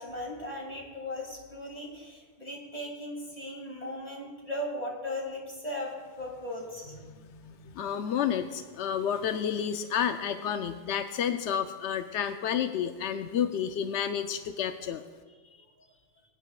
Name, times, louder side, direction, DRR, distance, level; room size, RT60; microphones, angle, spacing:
voice 1, 0.0-7.9 15.4-16.2, left 1 dB, 40° left, -2 dB, 2.8 m, -38 dB
voice 2, 7.8-15.0, left 8 dB, 90° left, 8 dB, 0.9 m, -30 dB
22.0 x 10.0 x 2.4 m, 1.4 s
omnidirectional pair, 1.1 m